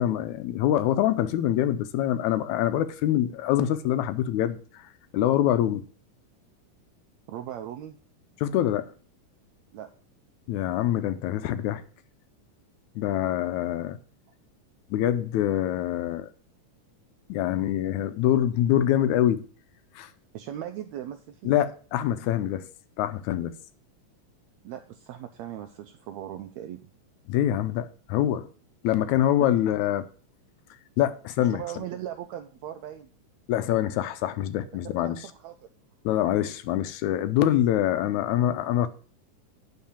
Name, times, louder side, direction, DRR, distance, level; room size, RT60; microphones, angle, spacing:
voice 1, 0.0-4.8 5.1-5.8 8.4-8.9 10.5-11.8 13.0-14.0 14.9-16.3 17.3-19.4 20.0-20.1 21.5-22.7 23.0-23.5 27.3-28.5 28.8-30.1 31.0-31.6 33.5-35.2 36.1-38.9, left 12 dB, 75° left, 1.8 m, -25 dB
voice 2, 7.3-8.0 9.7-9.9 20.3-21.5 24.6-26.8 29.4-29.5 31.4-33.1 34.8-35.7, right 11 dB, 85° right, 1.5 m, -38 dB
10.0 x 3.7 x 7.2 m
omnidirectional pair, 3.7 m